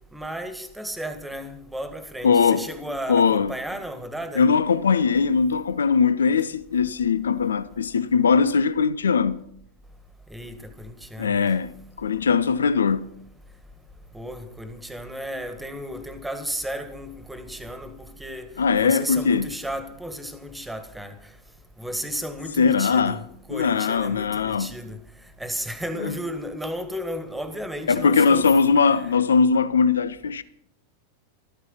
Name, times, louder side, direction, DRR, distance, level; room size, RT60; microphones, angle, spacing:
voice 1, 0.1-4.5 10.3-11.4 14.1-21.3 21.8-25.0 25.4-28.5 29.0-29.1, equal, 5° right, 1.7 m, -34 dB
voice 2, 2.2-2.7 3.1-3.5 4.4-9.4 11.2-11.7 12.0-13.1 18.6-19.5 22.6-23.2 23.5-24.8 26.0-26.2 27.9-30.4, left 5 dB, 70° left, 0.5 m, -20 dB
13.5 x 13.5 x 5.6 m
figure-of-eight pair, 90°, 0 cm